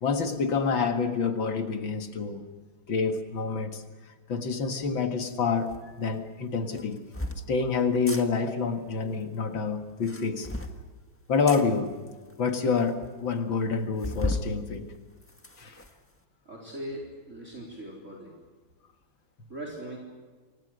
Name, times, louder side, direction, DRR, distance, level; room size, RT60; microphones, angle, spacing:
voice 1, 0.0-2.5 2.9-3.8 4.3-7.0 7.5-10.5 11.3-12.0 12.4-14.9 15.6-15.8, left 5 dB, 70° left, 6 dB, 2.5 m, -27 dB
sound 1, 5.7-5.8 6.7-7.4 7.9-8.2 9.9-10.8 11.5-11.6 12.3-12.4 12.6-12.7 13.0-13.1 14.0-14.5 14.9-15.9, left 1 dB, 5° left, 1.4 m, -34 dB
voice 2, 16.4-18.3 19.5-20.0, right 1 dB, 35° right, -2 dB, 4.4 m, -40 dB
28.5 x 25.0 x 6.5 m, 1.4 s
omnidirectional pair, 2.2 m